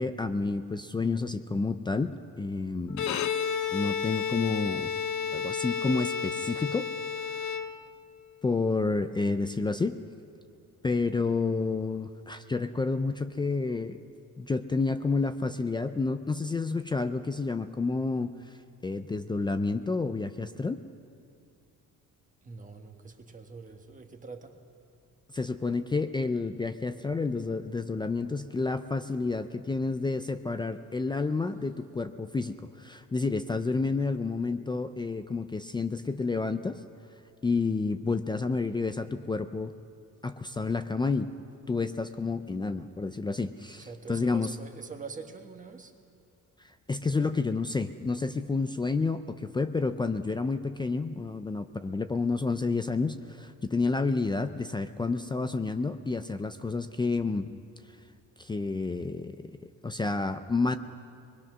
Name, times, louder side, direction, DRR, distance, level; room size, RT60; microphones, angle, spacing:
voice 1, 0.0-2.1 2.4-3.3 3.7-4.9 5.3-6.9 7.4-7.5 8.4-10.0 10.8-14.0 14.4-18.4 18.8-20.8 25.3-36.8 37.4-39.7 40.2-41.3 41.7-44.5 46.9-57.5 58.4-60.8, left 3 dB, 15° left, 9 dB, 0.4 m, -30 dB
Bowed string instrument, 2.9-8.1, left 7 dB, 60° left, 1.0 m, -31 dB
voice 2, 22.4-24.7 27.9-28.1 28.3-28.5 43.8-46.0, right 4 dB, 25° right, 4 dB, 1.2 m, -44 dB
25.5 x 21.0 x 6.1 m, 2.6 s
cardioid pair, 175°, 34 cm